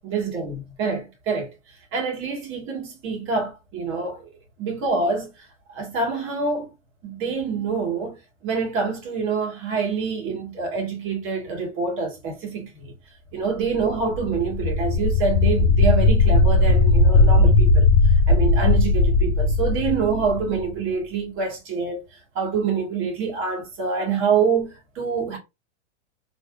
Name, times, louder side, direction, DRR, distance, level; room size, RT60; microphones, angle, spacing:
voice 1, 0.0-1.5 1.9-4.3 4.6-5.3 5.7-6.7 7.0-12.9 13.3-25.4, right 5 dB, 35° right, 1.5 m, -26 dB
sound 1, 13.9-20.7, left 3 dB, 45° left, 0.6 m, -17 dB
3.4 x 3.0 x 2.3 m
supercardioid pair, 145°, 37 cm